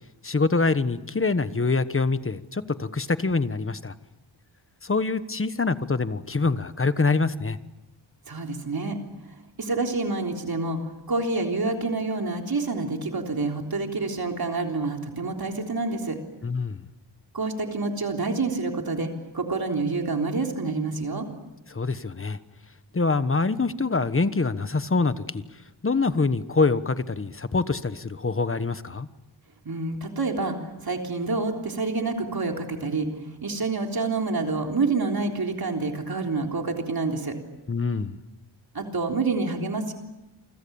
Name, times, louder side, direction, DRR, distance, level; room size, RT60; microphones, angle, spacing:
voice 1, 0.2-3.9 4.8-7.6 16.4-16.8 21.7-22.4 22.9-25.4 25.8-29.1 37.7-38.2, left 3 dB, 30° left, 12 dB, 1.3 m, -25 dB
voice 2, 8.3-9.0 9.6-10.8 11.1-16.2 17.3-21.3 29.6-30.6 30.8-37.3 38.7-39.9, right 3 dB, 50° right, 3 dB, 3.6 m, -27 dB
28.5 x 25.0 x 7.1 m, 0.99 s
wide cardioid pair, 105°, 45 cm